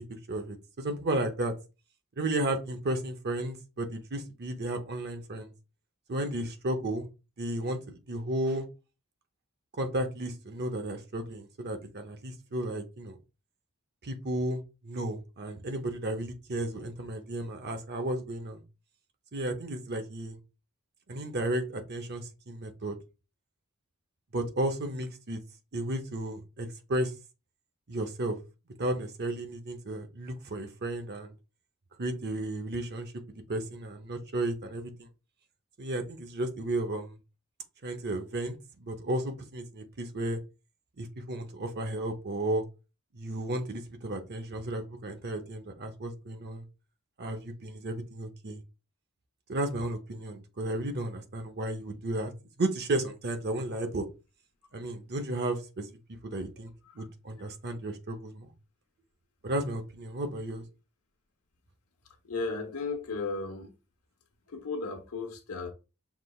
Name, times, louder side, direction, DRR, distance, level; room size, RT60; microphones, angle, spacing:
voice 1, 0.1-1.5 2.2-5.5 6.1-7.1 7.4-8.7 9.8-13.2 14.0-18.6 19.3-20.4 21.1-23.0 24.3-25.4 25.7-27.1 27.9-28.4 28.8-31.3 32.0-33.1 33.5-35.1 35.8-37.2 37.8-40.4 41.0-42.6 43.1-46.6 47.2-48.6 49.5-52.3 52.6-54.1 54.7-56.7 57.0-58.5 59.4-60.6, right 1 dB, 45° right, 0.8 m, -33 dB
voice 2, 62.2-63.7 64.5-65.7, left 4 dB, 85° left, 1.0 m, -35 dB
5.9 x 3.3 x 2.3 m
head